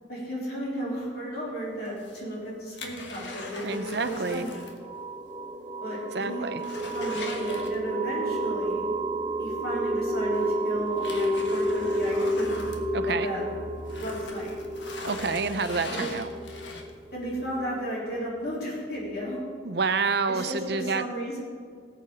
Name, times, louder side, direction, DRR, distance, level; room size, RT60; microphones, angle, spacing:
voice 1, 0.1-4.6 5.8-6.4 6.8-8.9 9.4-12.7 13.0-13.5 14.0-14.6 15.9-16.1 17.1-19.4 20.3-21.4, equal, 55° left, -5 dB, 3.6 m, -34 dB
sound 1, 1.9-4.8 5.1-5.2 5.7-5.8 6.1-8.2 9.6-9.7 10.3-13.5 13.8-17.1 17.7-17.8, left 3 dB, 70° left, 1.4 m, -41 dB
voice 2, 3.6-4.4 6.1-6.6 12.9-13.3 15.0-16.3 19.6-21.0, right 4 dB, 60° right, 10 dB, 0.7 m, -28 dB
sound 2, 3.7-18.2, right 1 dB, 20° right, 0.5 m, -31 dB
19.0 x 8.3 x 3.9 m, 2.1 s
head